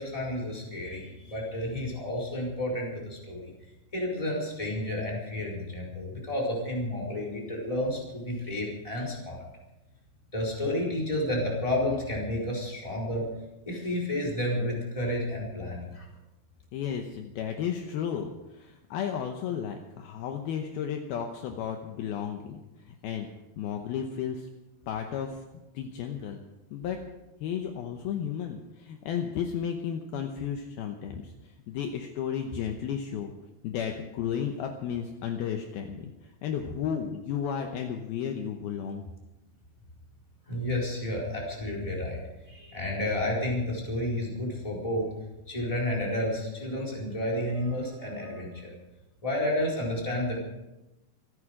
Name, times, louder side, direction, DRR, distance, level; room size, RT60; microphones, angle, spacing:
voice 1, 0.0-3.5 3.9-9.4 10.3-13.2 13.7-16.0 40.5-42.2 42.5-45.0 45.5-48.7 49.2-50.4, left 1 dB, 10° left, -3 dB, 3.8 m, -31 dB
voice 2, 16.7-22.6 23.0-23.3 23.6-24.5 24.9-25.4 25.7-26.4 26.7-27.0 27.4-31.3 31.7-33.3 33.6-36.1 36.4-39.0, left 8 dB, 75° left, 4 dB, 2.6 m, -33 dB
26.0 x 10.0 x 5.0 m, 1.0 s
omnidirectional pair, 5.1 m